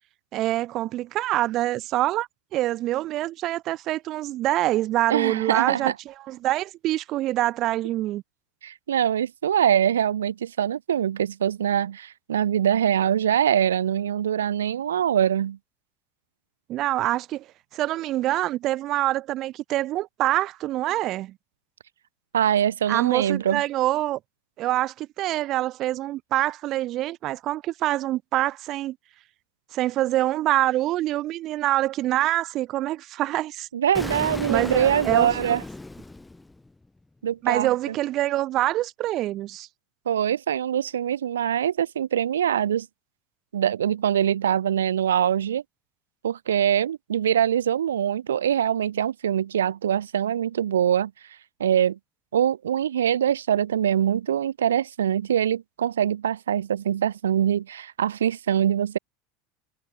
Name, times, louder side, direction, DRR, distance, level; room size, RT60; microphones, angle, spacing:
voice 1, 0.3-8.2 16.7-17.4 17.7-21.3 22.9-24.2 24.6-29.0 29.7-33.7 34.1-34.2 34.5-35.3 37.4-39.7, right 15 dB, 50° right, 1.0 m, -25 dB
voice 2, 5.1-5.9 8.6-15.6 22.3-23.6 33.7-35.6 37.2-37.9 40.1-42.9 43.5-45.6 46.2-51.1 51.6-52.0 52.3-59.0, right 9 dB, 80° right, 0.8 m, -23 dB
Explosion, 33.9-36.9, left 2 dB, 10° left, 3.3 m, -35 dB
figure-of-eight pair, 75°, 0 cm